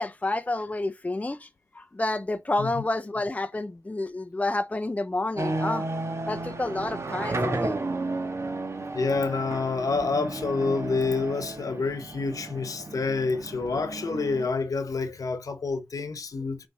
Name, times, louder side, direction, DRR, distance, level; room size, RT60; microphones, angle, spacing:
voice 1, 0.0-1.5 1.7-5.9 6.3-7.8, left 2 dB, 25° left, 0.7 m, -29 dB
sound 1, 5.4-14.5, right 2 dB, 45° right, 1.8 m, -33 dB
voice 2, 8.9-16.7, left 4 dB, 65° left, 1.2 m, -28 dB
8.2 x 3.3 x 5.1 m
cardioid pair, 55°, 6 cm